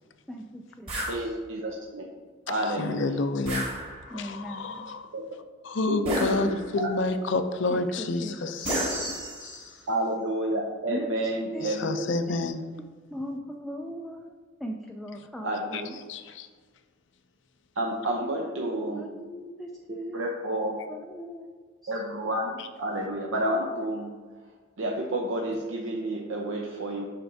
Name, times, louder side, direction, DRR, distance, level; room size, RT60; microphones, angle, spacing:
voice 1, 0.3-1.4 4.1-4.9 7.7-9.1 10.9-12.4 13.1-14.3 14.6-16.0 18.2-20.3 20.9-21.5 21.8-21.9, equal, ahead, 0 dB, 0.3 m, -39 dB
sound 1, 0.9-1.2 3.4-4.3 6.0-6.8 8.6-9.8, right 1 dB, 25° right, 1.6 m, -32 dB
voice 2, 1.1-2.0 2.5-3.1 5.1-5.2 5.8-6.6 9.9-12.2 15.4-15.9 17.8-19.0 20.1-20.8 21.9-24.1 24.8-27.0, right 1 dB, 70° right, -1 dB, 0.7 m, -30 dB
voice 3, 2.5-3.7 4.1-5.1 5.6-9.1 9.6-9.7 11.6-12.6 15.7-15.8 16.1-16.5 22.6-22.7, left 3 dB, 60° left, 9 dB, 0.5 m, -29 dB
7.7 x 5.9 x 2.7 m, 1.5 s
head